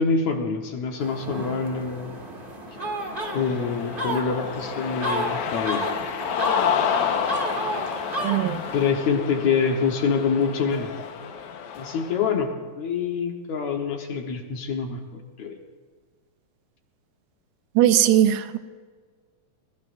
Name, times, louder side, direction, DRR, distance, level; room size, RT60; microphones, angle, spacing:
voice 1, 0.0-2.1 3.3-5.9 8.7-10.9 11.8-15.6, left 5 dB, 60° left, 2 dB, 2.2 m, -26 dB
sound 1, 1.0-8.9, right 1 dB, 30° right, 0.9 m, -32 dB
Cheering, 3.0-12.3, left 7 dB, 80° left, 3.0 m, -30 dB
voice 2, 8.2-8.6 17.8-18.6, right 12 dB, 75° right, 9 dB, 2.0 m, -19 dB
26.5 x 21.0 x 2.6 m, 1.6 s
omnidirectional pair, 4.2 m